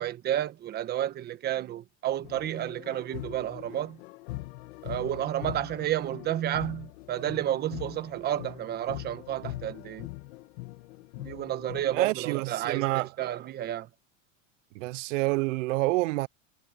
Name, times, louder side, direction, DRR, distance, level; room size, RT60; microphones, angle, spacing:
voice 1, 0.0-4.0 4.8-10.1 11.2-13.9, right 12 dB, 25° right, 1.3 m, -31 dB
sound 1, 2.2-12.1, left 19 dB, 60° left, 1.9 m, -42 dB
voice 2, 11.9-13.1 14.8-16.3, right 21 dB, 80° right, 0.5 m, -28 dB
supercardioid pair, 160°, 37 cm